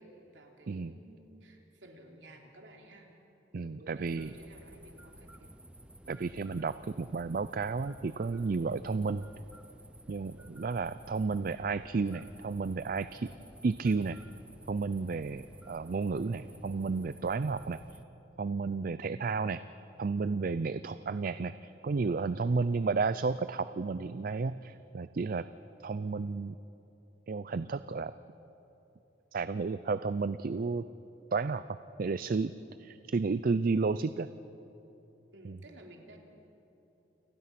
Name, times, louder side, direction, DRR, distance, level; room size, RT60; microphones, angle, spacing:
voice 1, 0.0-3.1 3.6-5.5 22.4-22.6 35.3-36.2, right 1 dB, 85° right, 1 dB, 3.1 m, -54 dB
voice 2, 3.5-4.3 6.1-9.3 10.1-13.3 13.6-14.2 14.7-17.8 18.4-19.6 20.0-25.5 25.8-26.6 27.3-28.1 29.3-30.8 31.3-32.5 32.8-34.3 35.4-35.6, right 4 dB, 50° right, 14 dB, 0.4 m, -32 dB
sound 1, 4.0-18.0, right 1 dB, 5° right, 0.6 m, -53 dB
29.0 x 19.5 x 5.9 m, 3.0 s
head